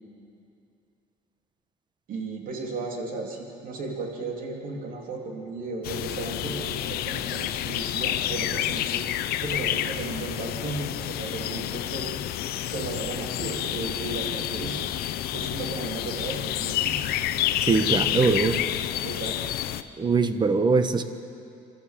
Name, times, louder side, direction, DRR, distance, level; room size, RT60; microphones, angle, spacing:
voice 1, 2.1-9.1 9.4-12.2 12.6-14.8 15.3-17.0 19.0-19.6, right 3 dB, 60° right, 1 dB, 3.3 m, -35 dB
sound 1, 5.8-19.8, left 12 dB, 75° left, 0.8 m, -29 dB
voice 2, 17.7-18.6 20.0-21.0, right 4 dB, 30° right, 9 dB, 1.2 m, -22 dB
27.0 x 13.0 x 7.5 m, 2.6 s
cardioid pair, 105°, 16 cm